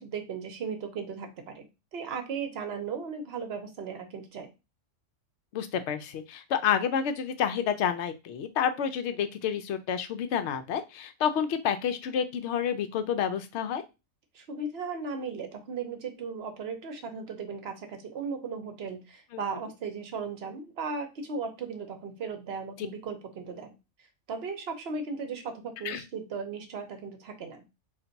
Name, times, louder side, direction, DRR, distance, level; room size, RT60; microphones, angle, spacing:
voice 1, 0.0-4.5 14.3-23.7 24.3-27.6, right 5 dB, 55° right, 6 dB, 1.0 m, -36 dB
voice 2, 5.5-13.8 19.3-19.4 22.8-22.9 25.8-26.0, left 8 dB, 65° left, 9 dB, 0.8 m, -29 dB
3.3 x 2.6 x 3.9 m, 0.26 s
omnidirectional pair, 1.4 m